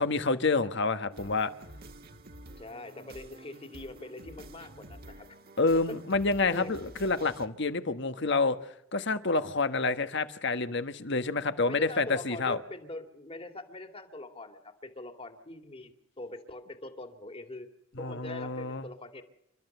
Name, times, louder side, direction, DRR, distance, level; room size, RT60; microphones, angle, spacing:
voice 1, 0.0-1.5 5.6-8.6 8.9-12.6 18.0-18.8, left 3 dB, 60° left, 10 dB, 1.4 m, -28 dB
sound 1, 1.1-7.5, right 1 dB, 50° right, 1.7 m, -49 dB
voice 2, 2.6-5.4 5.9-6.0 6.4-6.7 11.7-17.7 18.0-19.2, left 2 dB, 30° left, 7 dB, 2.3 m, -43 dB
29.5 x 13.0 x 6.8 m, 0.80 s
head